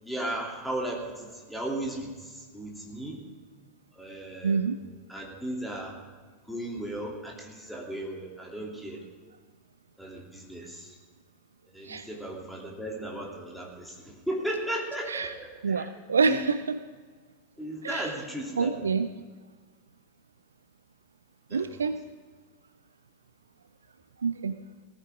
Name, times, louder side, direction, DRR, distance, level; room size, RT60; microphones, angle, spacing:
voice 1, 0.0-3.2 3.9-4.8 5.1-5.9 6.5-9.0 10.0-10.9 11.7-15.9 16.2-16.4 17.6-18.9 21.5-21.7, right 1 dB, ahead, -2 dB, 3.0 m, -36 dB
voice 2, 4.4-4.8 11.9-12.0 15.1-15.3 15.6-16.8 17.8-18.1 18.6-19.1 21.5-22.0 24.2-24.5, right 5 dB, 70° right, 12 dB, 0.5 m, -27 dB
18.5 x 14.5 x 3.7 m, 1.5 s
figure-of-eight pair, 90°, 0 cm